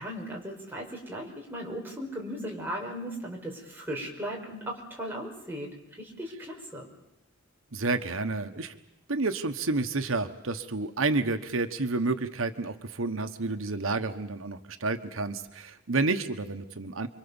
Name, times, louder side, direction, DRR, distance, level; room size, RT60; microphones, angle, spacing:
voice 1, 0.0-6.9, equal, 10° right, -2 dB, 5.5 m, -37 dB
voice 2, 7.7-8.7 9.1-17.1, right 3 dB, 90° right, 7 dB, 1.3 m, -30 dB
30.0 x 23.5 x 7.2 m, 0.85 s
head